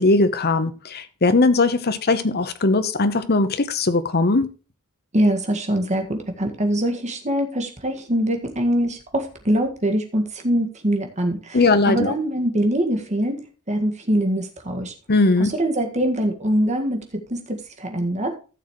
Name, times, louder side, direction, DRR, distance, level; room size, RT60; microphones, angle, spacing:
voice 1, 0.0-4.5 11.5-12.1 15.1-15.5, left 3 dB, 45° left, 0.9 m, -19 dB
voice 2, 5.1-13.4 13.7-14.9 15.4-17.0 17.3-18.3, right 1 dB, 35° right, 1.8 m, -23 dB
15.5 x 6.6 x 3.1 m
head